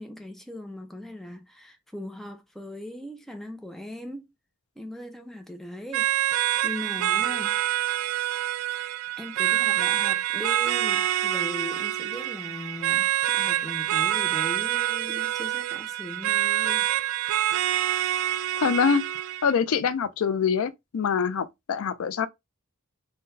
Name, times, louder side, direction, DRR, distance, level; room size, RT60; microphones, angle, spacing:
voice 1, 0.0-4.2 4.8-7.6 8.7-16.9, left 1 dB, ahead, 0.4 m, -39 dB
sound 1, 5.9-19.5, right 12 dB, 75° right, 0.3 m, -26 dB
voice 2, 18.6-19.0 19.4-22.3, left 6 dB, 70° left, 0.4 m, -24 dB
3.7 x 2.2 x 2.5 m
head